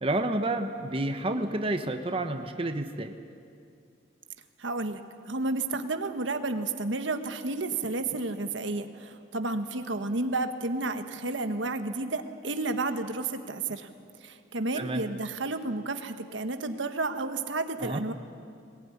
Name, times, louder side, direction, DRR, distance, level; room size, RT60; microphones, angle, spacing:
voice 1, 0.0-3.1 14.7-15.0 17.8-18.0, right 2 dB, 30° right, 6 dB, 1.1 m, -30 dB
voice 2, 4.6-5.0 5.3-13.9 14.2-18.1, right 2 dB, 80° right, 8 dB, 1.4 m, -31 dB
20.5 x 20.5 x 9.8 m, 2.3 s
head